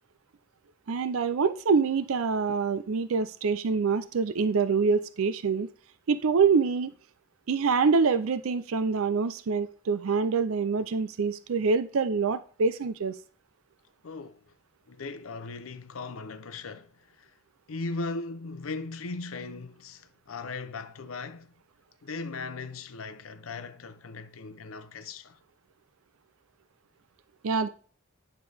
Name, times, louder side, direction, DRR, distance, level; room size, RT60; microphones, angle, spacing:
voice 1, 0.9-5.7 6.1-6.9 7.5-13.2 27.4-27.7, right 5 dB, 90° right, 0.5 m, -25 dB
voice 2, 14.0-14.4 14.9-17.3 17.7-21.5 22.0-25.4, left 3 dB, 90° left, 0.7 m, -38 dB
9.7 x 6.6 x 3.4 m
head